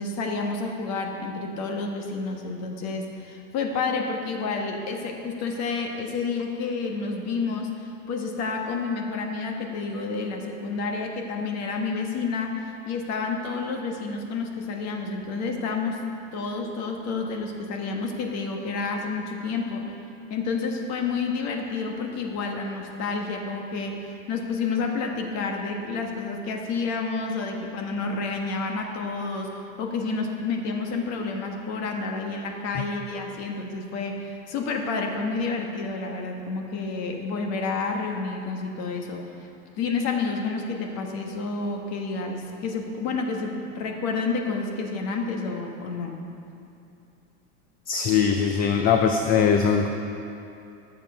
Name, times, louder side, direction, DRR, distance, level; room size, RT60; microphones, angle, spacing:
voice 1, 0.0-16.0 16.3-20.0 20.3-39.5 39.8-46.2, left 4 dB, 45° left, 2 dB, 1.4 m, -29 dB
voice 2, 47.9-49.9, left 7 dB, 25° left, 5 dB, 0.4 m, -21 dB
13.0 x 7.3 x 5.5 m, 2.7 s
supercardioid pair, 140°, 38 cm